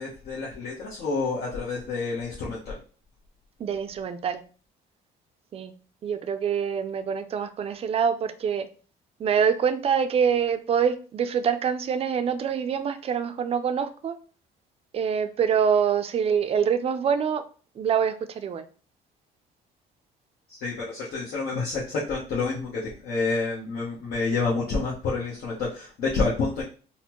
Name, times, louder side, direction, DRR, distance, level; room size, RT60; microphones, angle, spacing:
voice 1, 0.0-2.8 20.5-26.6, left 4 dB, 65° left, -6 dB, 1.0 m, -28 dB
voice 2, 3.6-4.4 5.5-5.7 6.0-8.7 9.2-14.2 14.9-17.4 17.8-18.6, right 7 dB, 35° right, 10 dB, 0.4 m, -25 dB
4.1 x 2.1 x 2.9 m, 0.39 s
cardioid pair, 110°, 17 cm